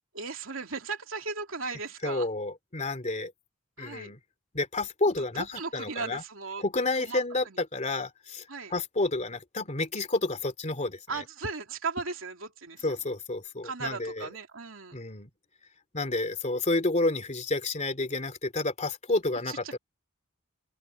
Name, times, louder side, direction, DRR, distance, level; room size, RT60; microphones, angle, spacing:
voice 1, 0.1-2.3 3.8-4.1 5.3-6.6 7.0-7.6 8.5-8.7 11.1-13.0 13.6-15.0 19.5-19.7, right 4 dB, 75° right, 3.0 m, -37 dB
voice 2, 2.0-3.3 3.8-4.2 4.5-6.2 6.6-8.4 8.7-11.0 12.8-14.3 14.9-15.3 15.9-19.8, left 2 dB, 35° left, 2.7 m, -30 dB
head